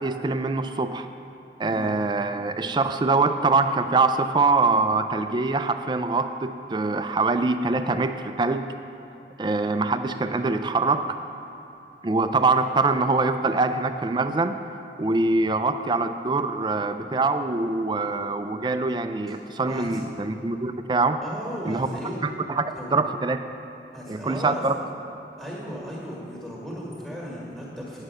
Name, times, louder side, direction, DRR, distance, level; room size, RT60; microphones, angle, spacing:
voice 1, 0.0-1.1 1.6-8.7 9.4-11.1 12.0-14.6 15.0-21.2 21.6-21.9 22.2-23.4 24.1-24.8, right 3 dB, 25° right, 9 dB, 0.3 m, -24 dB
voice 2, 1.6-2.0 19.3-20.1 21.2-22.2 22.7-23.0 23.9-24.6 25.4-28.0, equal, ahead, -5 dB, 1.7 m, -36 dB
9.5 x 6.3 x 6.4 m, 3.0 s
head